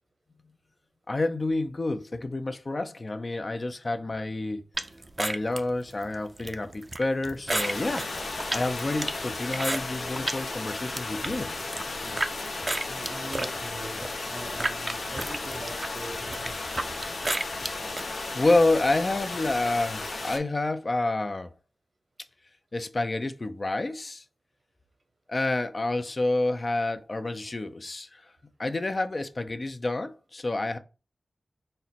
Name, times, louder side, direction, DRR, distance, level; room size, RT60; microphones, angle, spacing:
voice 1, 1.1-4.6 5.2-8.1 8.5-11.5 11.9-12.3 18.3-21.5 22.7-24.2 25.3-28.1 28.6-30.8, left 2 dB, 45° left, 0.5 m, -28 dB
sound 1, 4.8-10.4 10.8-12.3 12.7-18.1, right 2 dB, 35° right, 0.5 m, -33 dB
sound 2, 7.5-20.4, left 3 dB, 85° left, 0.8 m, -35 dB
voice 2, 12.9-16.7, right 2 dB, 70° right, 1.0 m, -42 dB
4.2 x 2.0 x 4.1 m
wide cardioid pair, 60°, 0 cm